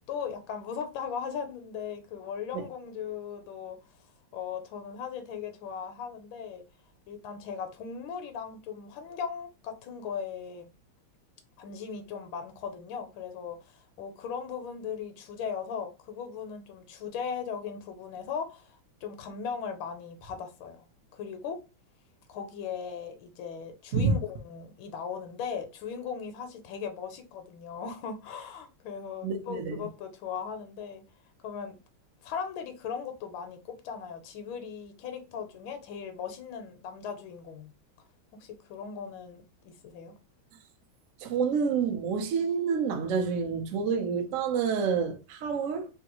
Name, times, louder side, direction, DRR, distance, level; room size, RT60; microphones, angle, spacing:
voice 1, 0.1-3.8 4.3-6.6 7.1-10.7 11.6-20.9 21.1-21.6 22.3-31.0 31.4-31.8 32.2-37.7 38.3-40.1, left 7 dB, 80° left, 1.3 m, -38 dB
voice 2, 29.2-29.8 41.2-45.9, right 5 dB, 90° right, 0.6 m, -28 dB
3.4 x 2.3 x 2.9 m
omnidirectional pair, 2.2 m